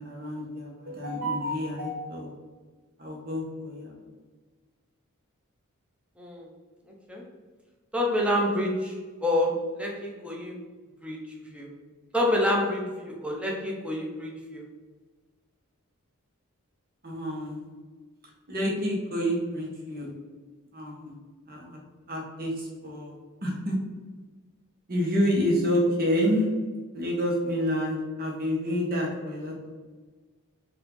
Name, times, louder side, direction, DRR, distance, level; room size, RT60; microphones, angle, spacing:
voice 1, 0.0-2.3 3.0-3.9 17.0-17.7 18.5-20.1 20.7-21.1 21.5-21.8 22.1-23.1 23.4-23.8 24.9-26.5 26.9-29.5, equal, 45° right, -2 dB, 1.2 m, -28 dB
voice 2, 7.9-10.5 11.0-11.7 12.1-14.6, left 1 dB, 5° right, -1 dB, 0.8 m, -28 dB
5.3 x 2.7 x 3.8 m, 1.4 s
head